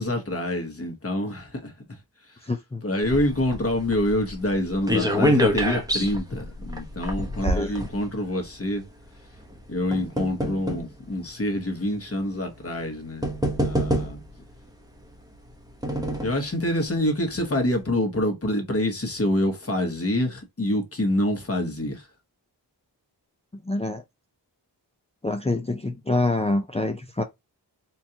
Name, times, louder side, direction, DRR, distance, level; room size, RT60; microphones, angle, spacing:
voice 1, 0.0-2.0 2.3-2.4 2.8-8.8 9.7-13.3 13.6-14.2 16.2-22.1, left 1 dB, 35° left, 1.2 m, -26 dB
voice 2, 2.5-2.8 7.4-7.7 23.7-24.0 25.2-27.2, left 2 dB, 15° left, 0.4 m, -26 dB
sound 1, 3.0-8.5 9.4-10.9 11.7-11.8 12.8-12.9 13.2-14.4 15.3-16.4 16.9-17.0 17.2-17.3, equal, 10° right, 0.8 m, -26 dB
4.4 x 2.4 x 2.8 m
wide cardioid pair, 85°, 42 cm